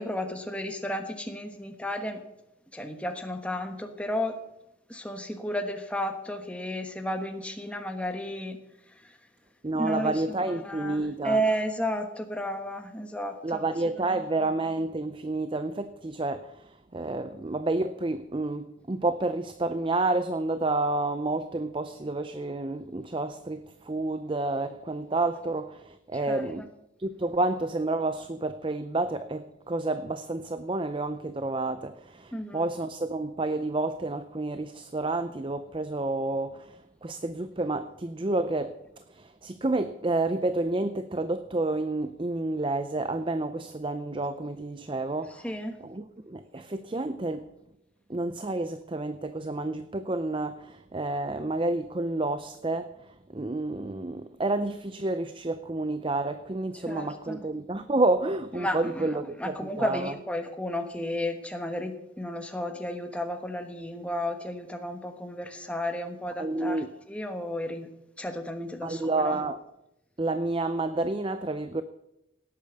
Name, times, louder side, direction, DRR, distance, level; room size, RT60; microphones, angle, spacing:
voice 1, 0.0-2.2 2.7-4.4 4.9-8.6 9.0-9.1 9.7-13.6 26.3-26.7 32.3-32.7 45.4-45.7 56.9-57.4 58.6-59.1 59.4-66.8 67.1-67.9 68.2-69.4, equal, 5° left, 5 dB, 1.3 m, -33 dB
voice 2, 9.6-11.4 13.4-26.7 27.0-45.5 45.8-47.5 48.1-60.1 66.4-66.9 68.8-69.6 70.2-71.8, right 2 dB, 25° right, 11 dB, 0.5 m, -30 dB
17.5 x 8.6 x 7.0 m, 0.86 s
head